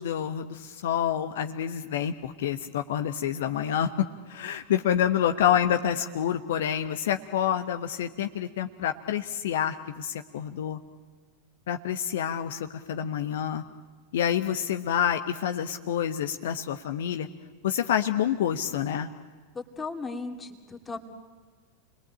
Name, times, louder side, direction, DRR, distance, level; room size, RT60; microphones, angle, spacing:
voice 1, 0.0-10.8 11.7-13.6 14.1-17.3 17.6-19.1, left 9 dB, 55° left, 7 dB, 1.1 m, -28 dB
voice 2, 19.5-21.0, left 3 dB, 15° left, 4 dB, 2.7 m, -36 dB
29.5 x 21.5 x 8.8 m, 1.5 s
figure-of-eight pair, 90°, 0 cm